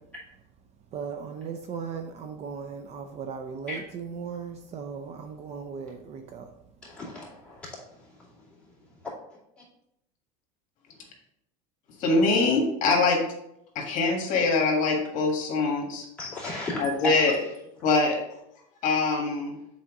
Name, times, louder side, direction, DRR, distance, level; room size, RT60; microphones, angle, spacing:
voice 1, 0.9-6.5, right 6 dB, 35° right, 6 dB, 0.5 m, -37 dB
voice 2, 6.8-8.3 9.6-9.7 11.9-12.0 16.2-17.5, left 2 dB, 5° left, -8 dB, 2.6 m, -36 dB
voice 3, 12.0-13.2 13.7-16.0 16.8-17.3 17.8-18.2 18.8-19.6, left 3 dB, 45° left, 0 dB, 1.7 m, -23 dB
7.2 x 4.2 x 3.7 m, 0.80 s
cardioid pair, 145°, 18 cm